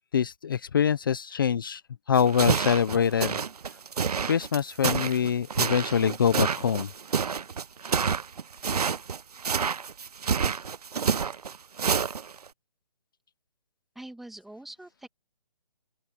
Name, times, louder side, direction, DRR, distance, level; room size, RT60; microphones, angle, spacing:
voice 1, 0.1-1.8 2.1-3.4 4.2-6.9, left 7 dB, 30° left, 1.0 m, -24 dB
sound 1, 2.2-12.5, right 6 dB, 65° right, 0.9 m, -28 dB
voice 2, 14.0-15.1, right 1 dB, ahead, 2.2 m, -44 dB
open air
hypercardioid pair, 170°, 21 cm